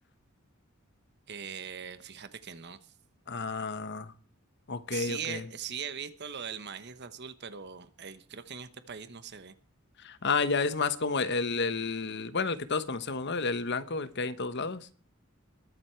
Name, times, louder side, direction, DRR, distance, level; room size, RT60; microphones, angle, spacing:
voice 1, 1.3-2.9 4.9-9.5, right 7 dB, 50° right, 12 dB, 1.0 m, -40 dB
voice 2, 3.3-4.1 4.7-5.4 10.0-14.9, left 4 dB, 55° left, 13 dB, 1.1 m, -31 dB
21.5 x 8.0 x 4.5 m, 0.42 s
head